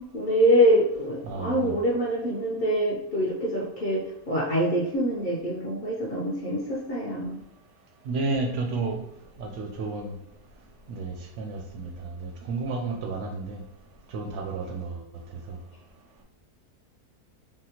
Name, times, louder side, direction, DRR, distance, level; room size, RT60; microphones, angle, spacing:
voice 1, 0.1-7.4, equal, 65° left, -6 dB, 0.5 m, -25 dB
voice 2, 1.2-1.7 8.1-9.0 9.4-10.2 10.9-13.6 14.1-15.0 15.5-15.6, right 3 dB, 70° right, 3 dB, 0.7 m, -31 dB
3.5 x 2.2 x 2.8 m, 0.80 s
omnidirectional pair, 1.7 m